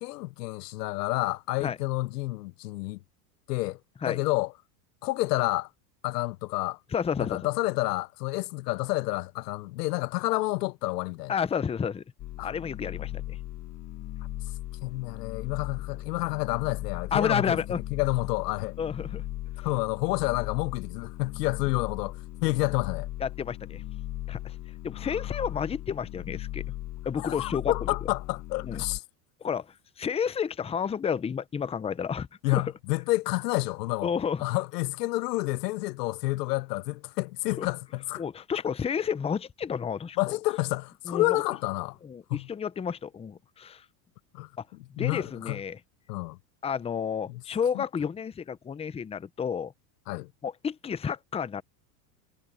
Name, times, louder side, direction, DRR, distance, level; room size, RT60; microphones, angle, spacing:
voice 1, 0.0-3.0 3.5-3.8 4.0-4.5 5.0-5.7 6.0-6.8 7.2-11.4 12.4-12.5 14.8-17.6 17.9-18.8 19.6-23.1 27.2-29.0 32.4-34.1 34.4-38.2 40.2-42.0 42.3-42.5 44.3-44.5 45.0-45.6 46.1-46.4 47.3-47.4 47.7-47.8 50.1-50.3, left 20 dB, 85° left, 0.7 m, -29 dB
voice 2, 6.9-7.4 11.3-12.0 12.4-13.4 17.1-17.8 18.8-19.2 23.2-23.8 24.3-24.5 24.8-26.6 27.1-27.7 28.6-28.8 29.4-29.7 30.0-32.6 34.0-34.4 37.6-37.7 38.2-40.4 41.1-41.4 42.0-43.8 44.6-44.7 44.9-45.8 46.6-49.7 50.4-51.6, left 7 dB, 15° left, 0.7 m, -31 dB
sound 1, 12.2-29.0, left 15 dB, 40° left, 1.3 m, -38 dB
supercardioid pair, 120°, 46 cm